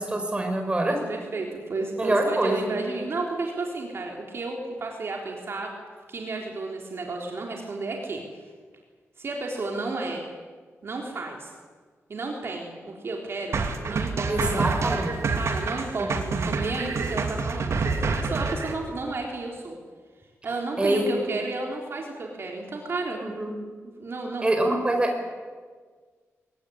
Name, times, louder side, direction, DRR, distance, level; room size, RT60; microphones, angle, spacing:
voice 1, 0.0-1.0 2.0-2.7 14.3-15.2 16.0-16.1 16.3-16.5 20.8-21.1 23.2-23.5 24.4-25.3, right 1 dB, 20° right, 4 dB, 5.3 m, -25 dB
voice 2, 0.9-5.7 6.1-8.2 9.2-10.2 10.8-11.5 12.1-13.6 13.9-19.8 20.4-23.2 24.0-24.5, right 3 dB, 55° right, 1 dB, 3.7 m, -32 dB
sound 1, 13.5-18.7, right 4 dB, 70° right, 2.8 m, -27 dB
23.0 x 18.5 x 9.9 m, 1.5 s
wide cardioid pair, 125°, 5 cm